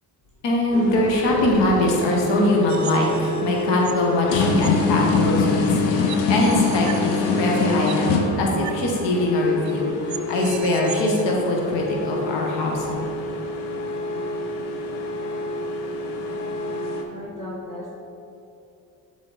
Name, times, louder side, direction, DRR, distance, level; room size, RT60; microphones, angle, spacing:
voice 1, 0.4-5.7 6.3-13.1, left 1 dB, 60° left, 0 dB, 1.1 m, -22 dB
sound 1, 0.7-17.0, left 3 dB, 80° left, 0.8 m, -25 dB
sound 2, 2.7-4.1 4.6-4.7 5.6-5.7 6.1-8.1 8.6-8.8 9.1-9.2 9.7-9.8 10.1-11.3, right 11 dB, 40° right, 0.4 m, -38 dB
voice 2, 16.7-17.9, right 1 dB, 15° left, -5 dB, 1.3 m, -38 dB
7.1 x 3.7 x 4.0 m, 2.8 s
hypercardioid pair, 55°, 48 cm